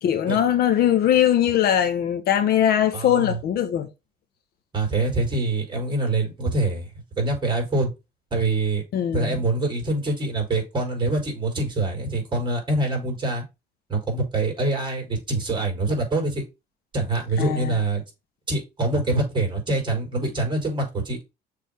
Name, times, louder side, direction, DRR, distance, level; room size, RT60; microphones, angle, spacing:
voice 1, 0.0-3.9 8.9-9.4 17.4-17.7, left 10 dB, 65° left, 1.2 m, -21 dB
voice 2, 2.9-3.3 4.7-6.9 7.2-7.9 8.3-8.8 9.1-13.4 13.9-16.4 16.9-18.0 18.5-21.2, right 2 dB, 25° right, 4.3 m, -25 dB
6.8 x 3.8 x 5.0 m
cardioid pair, 110°, 17 cm